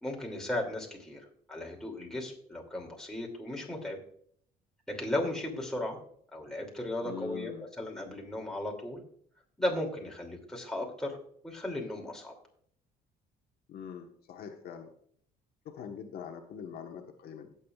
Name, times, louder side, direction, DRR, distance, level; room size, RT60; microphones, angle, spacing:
voice 1, 0.0-1.2 1.5-4.0 4.9-6.0 6.3-9.0 9.6-11.2 11.4-12.3, left 1 dB, 5° left, -1 dB, 2.7 m, -35 dB
voice 2, 7.0-7.7 13.7-14.9 15.6-17.5, left 7 dB, 65° left, 4 dB, 1.3 m, -43 dB
17.5 x 7.3 x 2.4 m, 0.63 s
cardioid pair, 110°, 17 cm